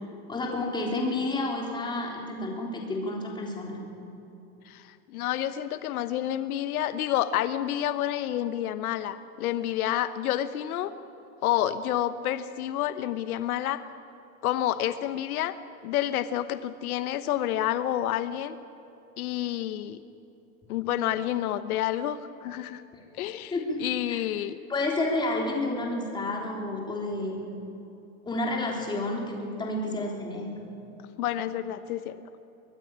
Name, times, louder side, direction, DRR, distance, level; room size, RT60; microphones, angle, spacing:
voice 1, 0.3-3.8 23.5-23.8 24.1-24.2 24.7-27.5 28.3-30.6, left 2 dB, 10° left, -1 dB, 3.5 m, -30 dB
voice 2, 4.7-10.9 11.4-13.8 14.4-15.6 15.8-18.6 19.2-20.0 20.7-22.8 23.1-23.5 23.8-24.6 31.2-32.2, left 12 dB, 80° left, 11 dB, 1.1 m, -29 dB
24.0 x 17.5 x 8.8 m, 3.0 s
supercardioid pair, 160°, 43 cm